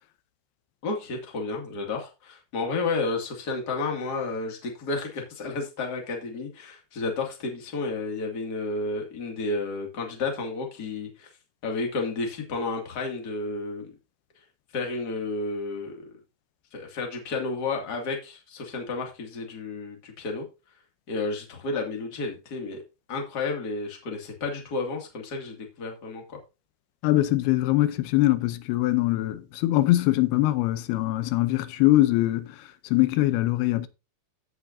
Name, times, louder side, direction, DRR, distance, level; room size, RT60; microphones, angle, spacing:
voice 1, 0.8-11.3 11.6-13.9 14.7-16.2 16.7-20.5 21.1-22.8 23.1-26.4, left 3 dB, 30° left, 2.0 m, -31 dB
voice 2, 27.0-32.5 32.9-33.9, left 16 dB, 85° left, 2.6 m, -22 dB
15.0 x 5.8 x 2.6 m
omnidirectional pair, 4.5 m